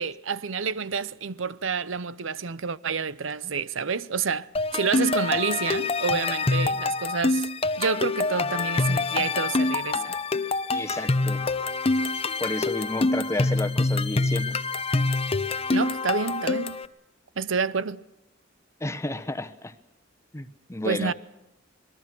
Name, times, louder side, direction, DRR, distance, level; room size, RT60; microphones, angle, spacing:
voice 1, 0.0-7.5 7.8-10.2 15.7-16.8 17.4-18.0 20.8-21.1, right 5 dB, 85° right, 0.8 m, -29 dB
sound 1, 4.6-16.9, left 3 dB, 30° left, 0.9 m, -26 dB
voice 2, 10.7-11.4 12.4-14.5 18.8-19.7 20.3-21.1, left 1 dB, 15° left, 1.2 m, -31 dB
26.5 x 21.0 x 6.1 m
head